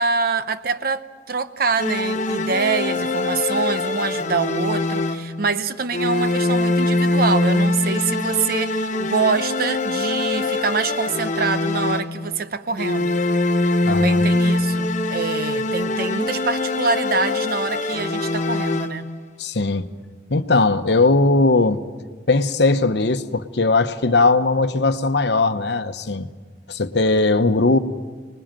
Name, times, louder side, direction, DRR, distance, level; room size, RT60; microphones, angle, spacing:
voice 1, 0.0-13.2 13.9-19.1, right 4 dB, 55° right, 0.8 m, -25 dB
sound 1, 1.8-5.5 5.9-12.4 12.8-19.2, left 2 dB, 40° left, 0.9 m, -23 dB
voice 2, 13.8-14.2 19.4-19.9 20.3-21.8 22.3-26.3 26.7-27.8, left 3 dB, 65° left, 1.0 m, -19 dB
25.0 x 20.5 x 7.5 m
head